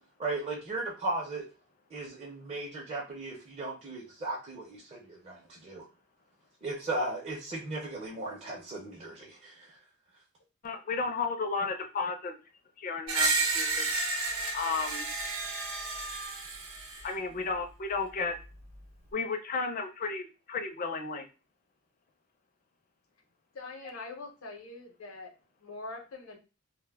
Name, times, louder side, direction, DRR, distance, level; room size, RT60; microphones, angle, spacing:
voice 1, 0.2-1.4 1.9-5.8 6.6-9.7, right 2 dB, 30° right, -4 dB, 0.5 m, -36 dB
voice 2, 10.6-12.3 12.8-13.9 14.5-15.1 17.0-18.3 19.1-21.3, left 4 dB, 40° left, 6 dB, 0.4 m, -33 dB
Screech, 13.1-17.1, right 3 dB, 85° right, 0.6 m, -31 dB
voice 3, 23.5-25.3 25.6-26.4, left 3 dB, 80° left, 3 dB, 0.7 m, -43 dB
2.1 x 2.0 x 3.3 m, 0.31 s
head